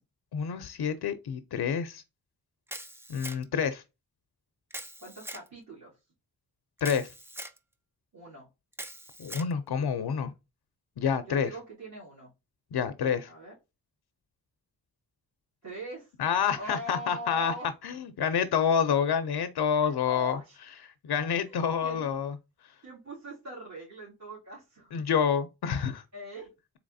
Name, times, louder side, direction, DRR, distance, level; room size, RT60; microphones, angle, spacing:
voice 1, 0.3-2.0 3.1-3.8 6.8-7.1 9.2-10.3 11.0-11.5 12.7-13.3 16.2-17.5 17.8-20.4 21.0-22.4 24.9-26.0, left 7 dB, 80° left, 0.5 m, -28 dB
Camera, 2.7-3.7 4.7-5.5 6.8-7.6 8.7-9.5, right 1 dB, 5° right, 0.4 m, -42 dB
voice 2, 5.0-5.9 8.1-8.5 11.3-12.3 13.3-13.5 15.6-16.1 16.6-17.7 19.7-20.6 21.3-22.1 22.8-25.0 26.1-26.5, right 1 dB, 45° right, 2.2 m, -42 dB
3.9 x 3.0 x 2.6 m
wide cardioid pair, 95°, 39 cm